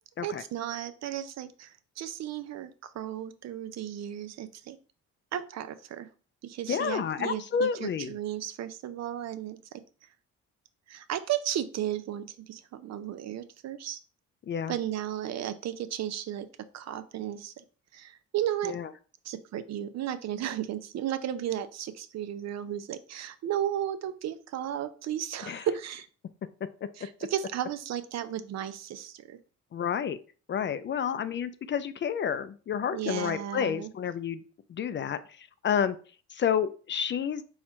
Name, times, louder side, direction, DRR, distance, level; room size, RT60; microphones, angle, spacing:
voice 1, 0.2-4.8 5.3-6.1 6.4-9.8 10.9-14.0 14.7-16.5 16.7-17.5 17.9-18.8 19.2-26.1 27.0-29.4 32.9-33.9, right 11 dB, 60° right, 11 dB, 0.5 m, -34 dB
voice 2, 6.7-8.2 14.5-14.7 18.7-18.9 25.5-25.6 29.7-30.2 30.5-34.4 34.7-36.0 36.3-37.4, left 7 dB, 40° left, 13 dB, 0.4 m, -30 dB
4.4 x 2.4 x 4.3 m, 0.38 s
cardioid pair, 90°, 30 cm